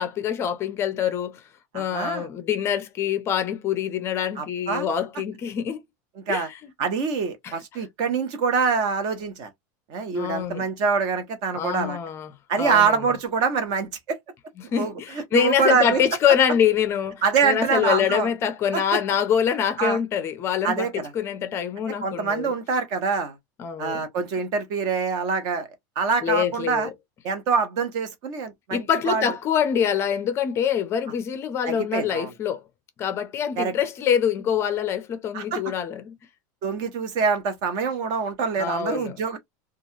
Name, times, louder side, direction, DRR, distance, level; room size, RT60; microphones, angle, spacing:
voice 1, 0.0-1.4 1.7-5.8 6.3-6.7 7.4-7.5 10.1-10.6 11.5-13.0 14.6-22.5 23.6-24.0 26.2-26.9 28.7-32.6 33.0-36.2 38.6-39.1, left 8 dB, 25° left, 0.5 m, -25 dB
voice 2, 1.7-2.3 4.4-4.9 6.2-6.5 6.8-9.5 9.9-12.0 12.5-14.2 14.8-16.0 17.2-18.3 18.7-18.8 19.8-20.0 20.6-21.1 22.0-23.4 23.8-25.7 26.0-26.9 27.2-29.3 31.6-32.3 33.6-33.7 35.3-35.6 36.6-39.4, right 5 dB, 45° right, 0.9 m, -25 dB
3.1 x 2.3 x 2.7 m
supercardioid pair, 170°, 10 cm